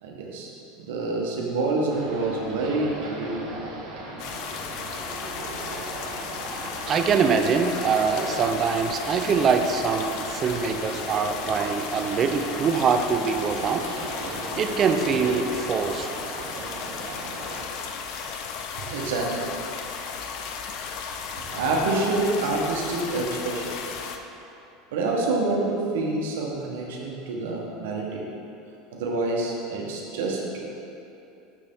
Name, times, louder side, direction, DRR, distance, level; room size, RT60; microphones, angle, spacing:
voice 1, 0.0-0.5 0.8-3.5 18.7-19.5 21.5-24.0 24.9-28.2 28.9-30.6, right 2 dB, 85° right, -2 dB, 1.2 m, -27 dB
sound 1, 1.9-17.7, right 2 dB, 60° right, 1.5 m, -37 dB
sound 2, 4.2-24.2, left 6 dB, 60° left, 0.5 m, -35 dB
voice 2, 6.9-13.9 14.6-16.1, right 5 dB, 35° right, 7 dB, 0.5 m, -24 dB
7.0 x 6.4 x 3.7 m, 2.8 s
supercardioid pair, 120°, 0 cm